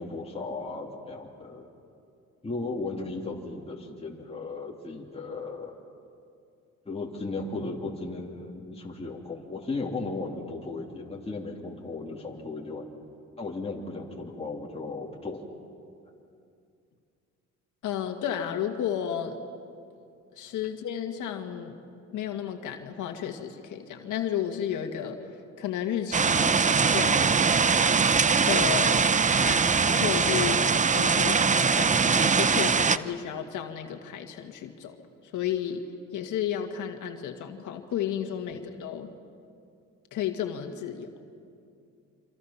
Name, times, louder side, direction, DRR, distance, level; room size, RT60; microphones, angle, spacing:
voice 1, 0.0-1.7 2.4-5.7 6.8-12.9 13.4-15.4 38.5-38.6, left 3 dB, 20° left, -2 dB, 3.0 m, -36 dB
voice 2, 17.8-19.4 20.4-21.8 22.1-25.2 25.6-27.2 28.5-35.0 35.2-35.8 36.1-39.1 40.1-41.1, left 9 dB, 80° left, 5 dB, 2.1 m, -32 dB
sound 1, 26.1-33.0, right 5 dB, 25° right, 0.6 m, -22 dB
28.0 x 26.0 x 5.9 m, 2.5 s
cardioid pair, 90°, 30 cm